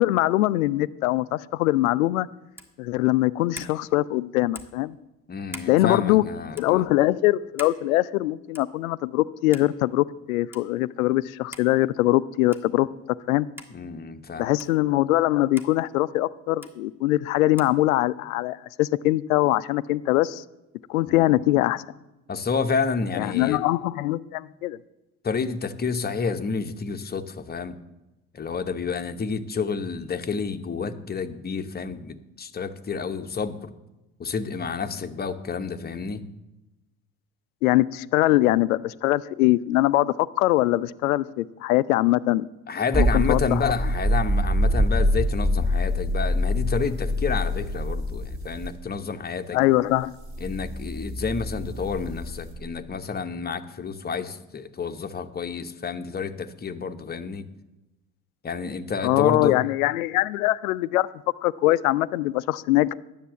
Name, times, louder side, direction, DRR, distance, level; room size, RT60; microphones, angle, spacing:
voice 1, 0.0-2.3 2.8-5.0 5.7-6.2 6.6-12.9 13.3-13.5 14.4-20.4 20.9-21.8 23.2-24.8 37.6-42.5 42.9-43.7 49.5-50.1 59.0-61.1 61.4-62.9, left 17 dB, 75° left, 18 dB, 0.5 m, -22 dB
sound 1, 2.5-2.8 3.5-3.8 4.5-4.8 5.5-5.7 6.5-6.7 7.6-7.8 8.5-8.8 9.5-9.7 10.5-10.6 11.5-11.7 12.5-12.7 13.6-13.7 14.6-14.7 15.6-15.7 16.6-16.7 17.6-17.8, equal, 5° right, 1.5 m, -42 dB
voice 2, 5.3-6.9 13.7-14.5 21.1-21.3 22.3-23.6 25.2-27.8 28.3-33.7 34.2-36.2 42.7-49.6 50.4-57.5 58.4-59.6, left 5 dB, 25° left, 8 dB, 0.9 m, -29 dB
sound 2, 42.9-48.7 50.2-52.5, equal, 30° right, 3.5 m, -25 dB
10.0 x 7.3 x 6.9 m, 1.0 s
hypercardioid pair, 60°, 42 cm